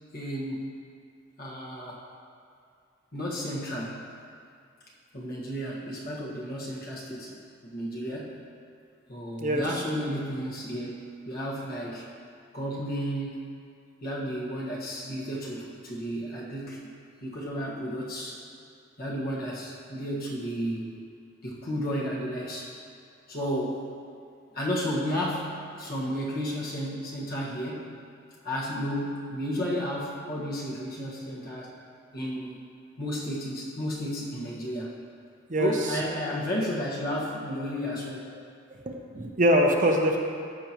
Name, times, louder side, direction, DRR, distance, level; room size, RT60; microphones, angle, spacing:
voice 1, 0.1-0.7 1.4-2.0 3.1-4.0 5.1-7.4 7.7-8.4 9.1-12.1 12.5-13.4 14.0-16.9 17.2-18.4 19.0-20.9 21.4-22.7 23.3-23.9 24.5-28.0 28.4-31.7 32.1-32.6 33.0-35.0 35.5-38.2, equal, 50° left, -5 dB, 1.6 m, -32 dB
voice 2, 38.8-40.2, equal, 40° right, 1 dB, 0.8 m, -23 dB
14.0 x 6.1 x 3.0 m, 2.4 s
head